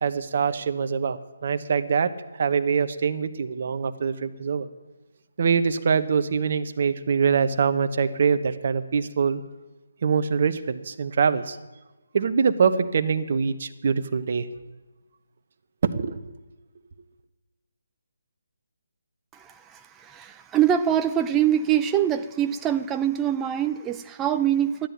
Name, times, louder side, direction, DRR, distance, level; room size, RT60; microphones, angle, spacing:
voice 1, 0.0-4.7 5.4-9.4 10.0-11.6 12.1-14.5 15.8-16.2, right 6 dB, 50° right, 10 dB, 1.0 m, -24 dB
voice 2, 19.3-24.9, right 10 dB, 15° right, 7 dB, 0.5 m, -24 dB
13.0 x 10.0 x 9.3 m, 1.1 s
figure-of-eight pair, 150°, 0 cm